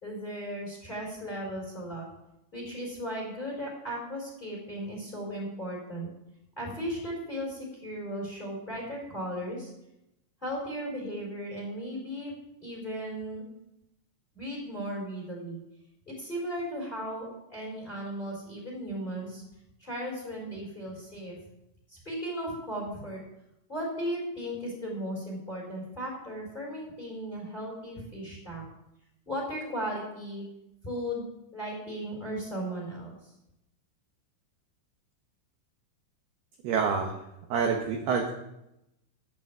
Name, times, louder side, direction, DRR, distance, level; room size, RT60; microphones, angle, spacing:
voice 1, 0.0-2.1 2.5-6.1 6.6-9.7 10.4-12.3 12.6-13.5 14.3-15.6 16.1-19.4 19.8-21.3 21.9-23.2 23.7-28.6 29.3-30.5 30.8-31.2 31.5-33.2, equal, 10° left, -2 dB, 3.6 m, -36 dB
voice 2, 36.6-37.1 37.5-38.3, right 6 dB, 70° right, 2 dB, 2.5 m, -27 dB
11.5 x 8.6 x 7.4 m, 0.86 s
omnidirectional pair, 5.9 m